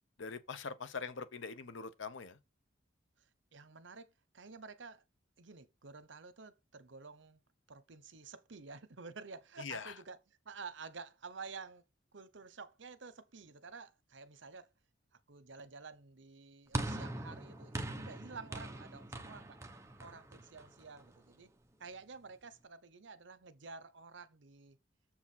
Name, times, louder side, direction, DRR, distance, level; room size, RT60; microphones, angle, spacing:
voice 1, 0.2-2.4 9.6-9.9, left 5 dB, 75° left, 0.7 m, -43 dB
voice 2, 3.2-5.0 5.4-7.4 7.7-11.8 12.1-14.7 15.3-19.6 20.0-21.5 21.8-24.8, right 4 dB, 70° right, 0.9 m, -51 dB
sound 1, 16.7-21.2, right 1 dB, 15° right, 0.8 m, -42 dB
7.1 x 4.8 x 5.5 m
head